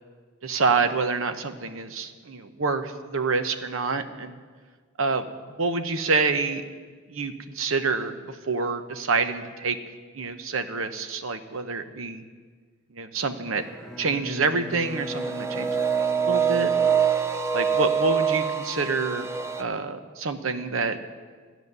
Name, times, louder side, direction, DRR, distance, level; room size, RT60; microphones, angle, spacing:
voice 1, 0.4-4.4 5.0-5.3 5.6-6.6 7.1-9.8 10.1-12.2 12.9-13.7 14.0-16.7 17.5-19.3 19.6-21.1, right 4 dB, 75° right, 9 dB, 0.9 m, -27 dB
Bowed string instrument, 13.4-17.8, left 1 dB, ahead, 1.2 m, -40 dB
sound 1, 14.9-19.6, right 7 dB, 15° right, 0.6 m, -25 dB
14.5 x 9.1 x 6.7 m, 1.5 s
head